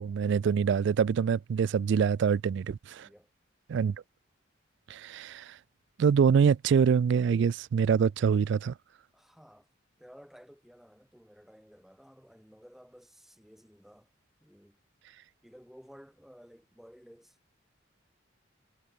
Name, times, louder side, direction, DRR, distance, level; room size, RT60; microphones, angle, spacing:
voice 1, 0.0-3.1 3.7-4.0 4.9-5.6 6.0-8.7, right 6 dB, 60° right, 0.3 m, -25 dB
voice 2, 2.9-3.3 9.1-9.7 10.0-14.1 14.4-14.8 15.4-17.5, equal, ahead, 2.8 m, -55 dB
head